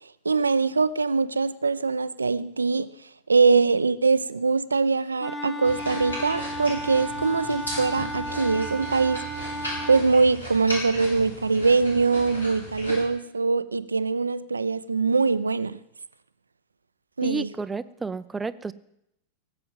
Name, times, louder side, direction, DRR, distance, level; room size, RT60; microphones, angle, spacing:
voice 1, 0.2-2.9 3.3-9.2 9.9-15.8 17.2-17.5, right 4 dB, 75° right, 15 dB, 0.5 m, -23 dB
Wind instrument woodwind instrument, 5.2-10.0, equal, 5° left, 1.5 m, -34 dB
sound 1, 5.6-13.0, equal, 80° left, 5.2 m, -36 dB
voice 2, 17.2-18.7, right 4 dB, 15° right, 15 dB, 0.6 m, -31 dB
18.5 x 7.8 x 7.4 m, 0.80 s
figure-of-eight pair, 90°, 0 cm